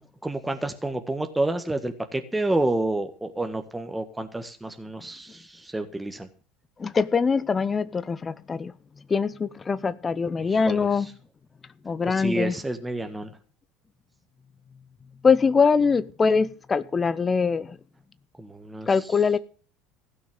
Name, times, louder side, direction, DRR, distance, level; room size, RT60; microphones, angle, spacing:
voice 1, 0.2-6.3 10.4-10.9 12.1-13.3 18.4-18.9, right 2 dB, 10° right, 6 dB, 1.6 m, -29 dB
voice 2, 6.8-8.7 9.1-11.1 11.8-12.5 15.2-17.8 18.9-19.4, left 5 dB, 25° left, 16 dB, 0.7 m, -23 dB
16.0 x 6.3 x 8.9 m, 0.40 s
hypercardioid pair, 85°, 0 cm